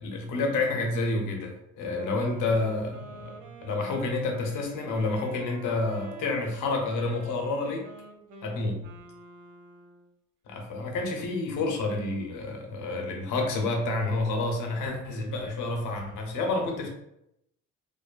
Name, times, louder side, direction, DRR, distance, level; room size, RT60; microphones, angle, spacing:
voice 1, 0.0-7.9 8.4-8.8 10.5-16.9, left 2 dB, 85° left, 2 dB, 0.7 m, -29 dB
Wind instrument woodwind instrument, 1.9-10.1, right 2 dB, 75° right, 0.5 m, -48 dB
2.5 x 2.4 x 2.3 m, 0.80 s
cardioid pair, 90°, 30 cm